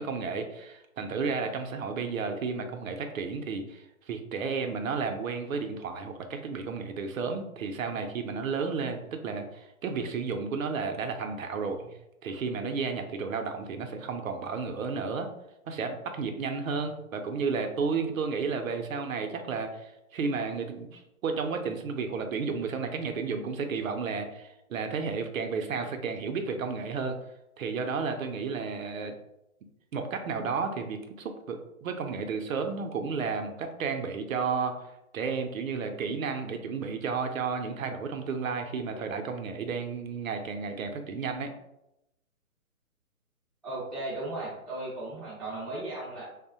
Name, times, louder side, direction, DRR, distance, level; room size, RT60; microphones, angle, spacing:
voice 1, 0.0-11.9 12.2-15.3 15.7-27.2 27.6-29.1 29.9-34.8 35.1-41.5, right 5 dB, 70° right, 6 dB, 0.5 m, -32 dB
voice 2, 43.6-46.2, right 2 dB, ahead, -14 dB, 0.4 m, -36 dB
2.7 x 2.0 x 2.7 m, 0.89 s
hypercardioid pair, 160°, 43 cm